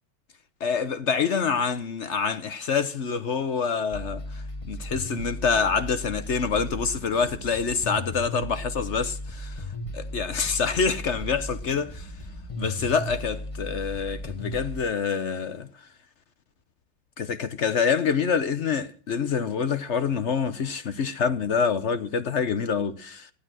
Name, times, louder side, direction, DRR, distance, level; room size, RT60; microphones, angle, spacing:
voice 1, 0.6-9.6 9.9-12.1 12.6-15.7 17.2-23.3, left 6 dB, 55° left, 0.8 m, -26 dB
sound 1, 3.9-14.8, left 1 dB, 15° left, 1.7 m, -36 dB
15.5 x 12.0 x 6.1 m
omnidirectional pair, 2.1 m